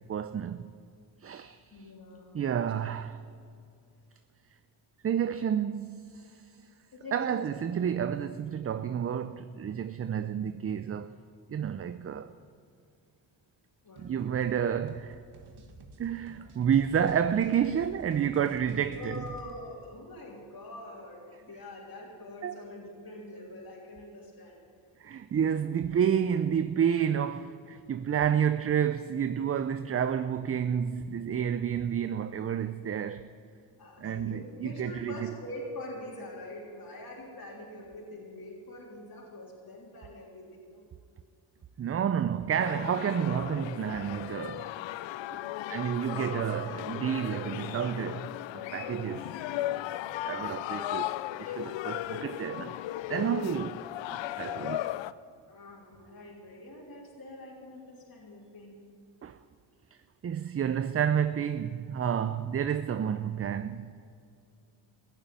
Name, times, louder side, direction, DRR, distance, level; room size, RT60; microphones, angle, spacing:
voice 1, 0.1-0.7 1.2-1.9 2.3-3.2 5.0-6.5 7.1-11.2 11.5-12.3 14.0-15.2 16.0-19.2 22.4-22.6 25.0-33.2 34.0-35.3 41.8-44.7 45.0-45.4 45.7-48.3 48.5-49.3 49.6-49.8 50.2-52.8 53.1-53.8 54.1-54.9 59.2-59.4 60.2-64.1, right 8 dB, 30° right, 0.5 m, -30 dB
voice 2, 1.7-2.6 6.9-7.4 13.8-14.0 18.9-24.6 33.8-40.8 55.5-58.8, left 1 dB, 45° left, 3.4 m, -44 dB
sound 1, 14.0-19.6, right 2 dB, 55° right, 1.6 m, -52 dB
sound 2, 42.6-55.1, left 14 dB, 65° left, 0.5 m, -36 dB
15.5 x 7.2 x 9.3 m
cardioid pair, 75°, 48 cm